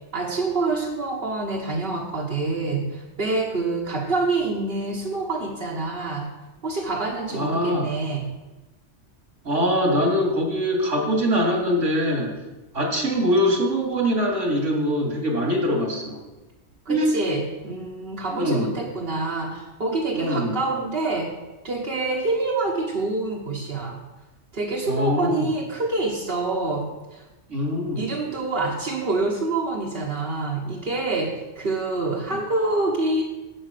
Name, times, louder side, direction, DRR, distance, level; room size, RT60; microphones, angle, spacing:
voice 1, 0.1-6.3 6.6-8.3 16.8-21.3 21.6-24.0 24.5-27.2 27.9-33.2, right 3 dB, 50° right, -4 dB, 1.5 m, -26 dB
voice 2, 7.3-7.9 9.4-12.3 12.7-16.2 16.9-17.2 18.3-18.7 20.1-20.6 24.9-25.5 27.5-28.1 32.3-32.4, equal, 80° right, 0 dB, 2.8 m, -23 dB
8.9 x 8.7 x 6.7 m, 1.1 s
omnidirectional pair, 1.3 m